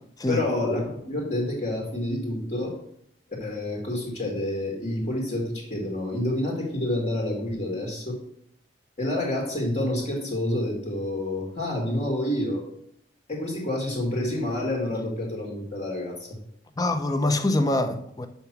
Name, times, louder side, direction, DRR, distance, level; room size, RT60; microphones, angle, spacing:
voice 1, 0.3-2.7 3.4-8.2 9.0-12.6 13.3-16.3, left 1 dB, 40° left, 1.6 m, -28 dB
voice 2, 16.8-18.3, left 1 dB, 20° left, 0.6 m, -24 dB
5.7 x 5.4 x 5.8 m
head